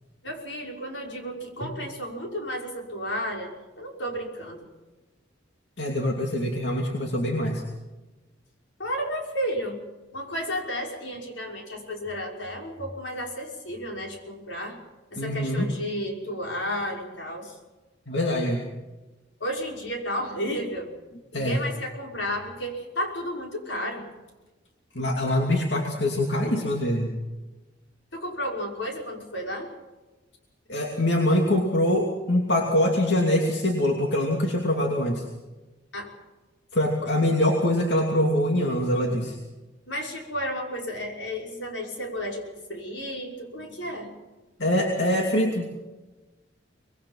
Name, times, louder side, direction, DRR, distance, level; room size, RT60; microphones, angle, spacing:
voice 1, 0.2-4.7 8.8-9.8 10.1-14.8 15.1-17.6 19.4-20.9 21.3-24.1 28.1-29.7 35.9-36.1 39.9-42.4 42.7-44.1, equal, 80° left, 1 dB, 5.7 m, -32 dB
voice 2, 5.8-7.6 15.1-15.7 18.1-18.6 21.3-21.6 24.9-27.1 30.7-35.2 36.7-39.4 44.6-45.7, left 1 dB, 65° left, 1 dB, 2.9 m, -24 dB
25.0 x 21.5 x 5.7 m, 1.2 s
head